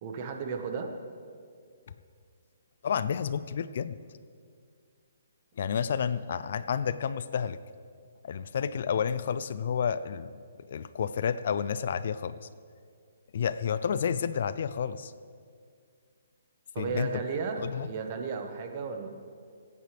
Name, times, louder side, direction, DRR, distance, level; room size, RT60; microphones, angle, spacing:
voice 1, 0.0-0.9 16.7-19.1, right 5 dB, 35° right, 4 dB, 1.3 m, -34 dB
voice 2, 2.8-4.0 5.6-7.6 8.2-10.3 10.7-12.5 13.3-15.1 16.8-17.2 17.6-17.9, left 7 dB, 55° left, 15 dB, 0.4 m, -30 dB
23.5 x 9.2 x 3.4 m, 2.2 s
hypercardioid pair, 155°, 0 cm